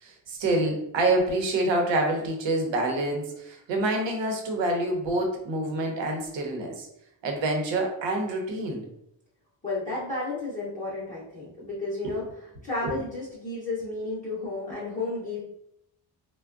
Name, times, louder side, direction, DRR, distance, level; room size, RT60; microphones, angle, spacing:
voice 1, 0.0-6.9 7.2-8.9 12.0-12.2 12.8-13.0, right 2 dB, 80° right, 2 dB, 0.9 m, -27 dB
voice 2, 9.6-12.2 12.6-15.4, left 2 dB, 20° left, -9 dB, 0.7 m, -32 dB
3.4 x 2.2 x 2.4 m, 0.78 s
cardioid pair, 160°, 44 cm